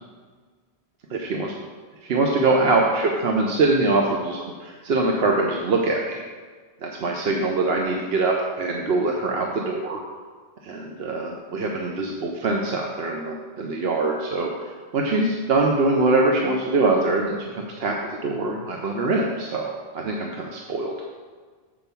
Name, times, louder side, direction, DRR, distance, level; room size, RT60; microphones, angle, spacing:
voice 1, 2.0-6.2 6.8-10.0 10.6-14.5 14.9-18.0 18.2-20.9, right 3 dB, 75° right, 0 dB, 1.0 m, -23 dB
7.6 x 4.5 x 6.8 m, 1.5 s
omnidirectional pair, 1.0 m